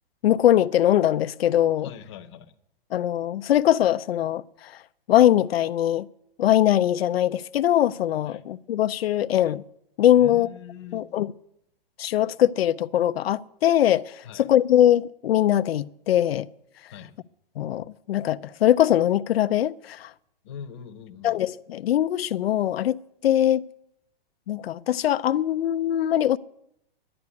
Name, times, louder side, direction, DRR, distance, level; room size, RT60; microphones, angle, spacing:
voice 1, 0.2-1.9 2.9-4.7 5.1-6.1 6.4-9.6 10.0-10.5 10.9-11.3 12.0-16.5 17.6-20.1 21.2-23.0 23.2-23.6 24.5-26.4, left 11 dB, 85° left, 0.5 m, -21 dB
voice 2, 1.8-2.5 8.3-8.4 10.1-11.1 14.2-14.5 16.9-17.1 20.4-21.4, left 8 dB, 30° left, 0.8 m, -41 dB
11.0 x 9.4 x 9.5 m
hypercardioid pair, 175°, 30 cm